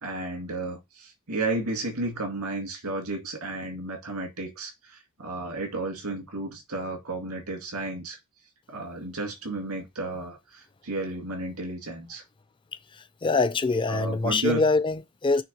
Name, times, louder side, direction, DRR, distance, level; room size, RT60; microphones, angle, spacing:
voice 1, 0.0-8.2 8.7-12.2 13.9-14.7, right 2 dB, 85° right, 2.1 m, -33 dB
voice 2, 13.2-15.4, left 3 dB, 20° left, 0.4 m, -24 dB
5.8 x 3.3 x 5.2 m
head